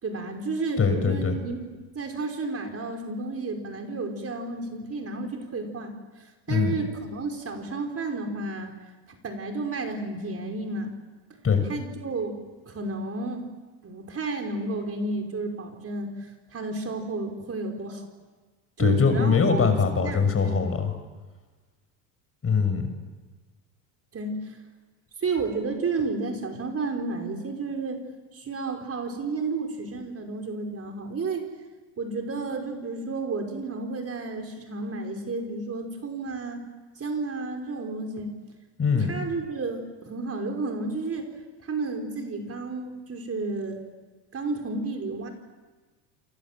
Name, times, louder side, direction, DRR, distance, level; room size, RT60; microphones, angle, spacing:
voice 1, 0.0-8.7 9.2-10.9 11.7-12.3 12.7-13.5 13.8-18.1 18.8-19.6 20.0-20.7 24.1-24.6 25.2-28.0 28.3-31.5 32.0-36.7 37.0-38.3 39.1-41.3 41.6-43.8 44.3-45.3, right 3 dB, 30° right, 3 dB, 5.4 m, -32 dB
voice 2, 0.8-1.4 6.5-6.7 11.4-11.6 18.8-20.9 22.4-22.9 38.8-39.1, left 5 dB, 30° left, 8 dB, 6.2 m, -22 dB
28.0 x 27.0 x 7.7 m, 1.3 s
supercardioid pair, 95°, 46 cm